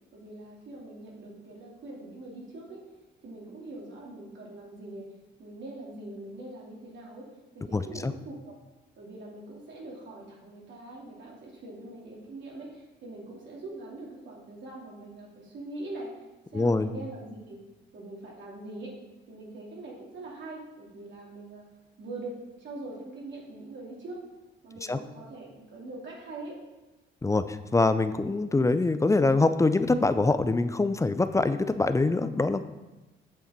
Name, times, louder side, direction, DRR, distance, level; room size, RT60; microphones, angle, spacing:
voice 1, 0.1-2.8 3.2-5.1 5.4-7.3 7.5-8.5 9.0-16.1 16.5-17.6 17.9-18.9 19.3-21.6 22.0-24.2 24.6-26.6, right 2 dB, 65° right, -3 dB, 3.1 m, -42 dB
voice 2, 7.7-8.1 16.5-16.9 24.9-25.0 27.2-32.6, left 3 dB, 15° left, 11 dB, 0.5 m, -24 dB
8.2 x 7.0 x 4.5 m, 1.1 s
cardioid pair, 90°, 20 cm